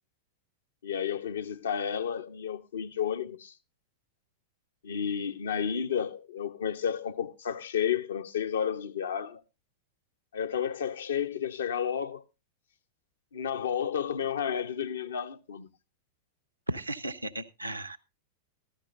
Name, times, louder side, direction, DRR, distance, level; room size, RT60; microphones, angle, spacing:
voice 1, 0.8-3.5 4.8-9.4 10.3-12.2 13.3-15.7, left 8 dB, 65° left, 0.9 m, -31 dB
voice 2, 16.7-18.0, right 1 dB, 85° right, 0.7 m, -35 dB
15.0 x 13.5 x 2.5 m
figure-of-eight pair, 90°, 0 cm